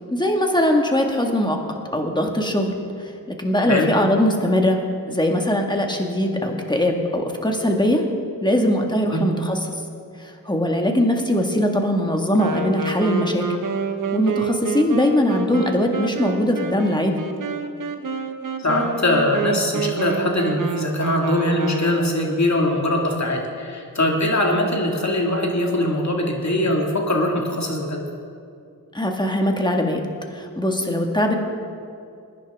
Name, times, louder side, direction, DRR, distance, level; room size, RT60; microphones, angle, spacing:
voice 1, 0.1-1.6 1.9-2.7 3.0-3.1 3.4-4.8 5.1-8.0 8.4-9.6 10.2-13.4 14.1-17.2 28.9-30.0 30.3-31.4, left 1 dB, 10° left, 2 dB, 1.8 m, -21 dB
Wind instrument woodwind instrument, 12.4-22.3, right 4 dB, 60° right, 1.0 m, -28 dB
voice 2, 18.6-28.0, left 1 dB, 50° left, 0 dB, 2.3 m, -22 dB
20.5 x 10.5 x 3.7 m, 2.5 s
cardioid pair, 50°, 36 cm